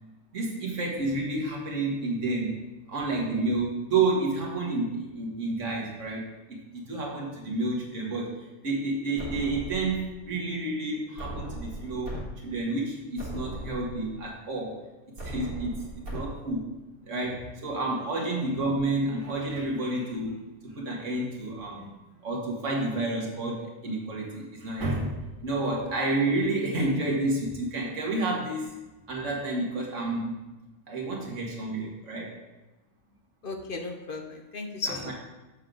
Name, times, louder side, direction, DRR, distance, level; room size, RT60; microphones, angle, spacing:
voice 1, 0.3-2.5 2.9-14.8 15.2-16.7 17.0-20.4 20.6-21.9 22.2-25.1 25.4-28.8 29.1-30.4 30.9-32.3 34.8-35.1, right 2 dB, 60° right, -1 dB, 1.9 m, -30 dB
sound 1, 9.2-10.2 11.2-12.2 12.7-12.8 13.2-14.2 15.2-16.2, right 1 dB, 85° right, 2.1 m, -38 dB
voice 2, 33.4-35.1, left 3 dB, 50° left, 4 dB, 0.7 m, -35 dB
7.5 x 6.4 x 3.8 m, 1.1 s
omnidirectional pair, 1.5 m